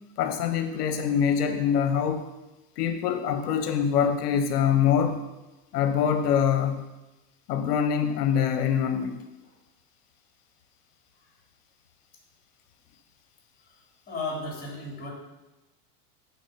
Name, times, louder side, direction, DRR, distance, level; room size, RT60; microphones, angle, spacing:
voice 1, 0.2-2.3 2.8-5.3 5.7-6.9 7.5-9.2, left 8 dB, 70° left, 8 dB, 1.0 m, -24 dB
voice 2, 14.1-15.1, left 2 dB, 20° left, -2 dB, 3.0 m, -34 dB
11.0 x 4.8 x 5.2 m, 1.0 s
hypercardioid pair, 115°, 48 cm